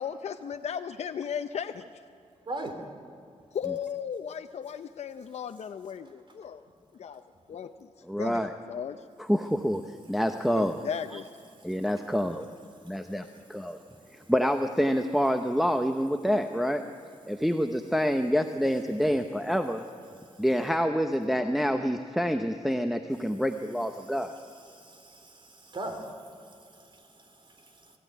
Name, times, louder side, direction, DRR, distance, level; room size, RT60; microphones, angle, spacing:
voice 1, 0.0-1.9 3.5-6.6 7.0-7.2 7.5-7.9 8.2-9.0 10.5-11.3, left 7 dB, 70° left, 7 dB, 0.6 m, -36 dB
voice 2, 2.5-2.8 24.6-26.1 26.8-27.1 27.6-27.9, right 2 dB, 45° right, 5 dB, 3.4 m, -39 dB
voice 3, 8.1-8.5 9.2-10.8 11.1-11.2 11.6-12.5 12.8-13.8 14.1-16.8 17.3-19.8 20.4-24.3, equal, ahead, 6 dB, 0.8 m, -27 dB
21.0 x 15.5 x 9.4 m, 2.5 s
wide cardioid pair, 110°, 12 cm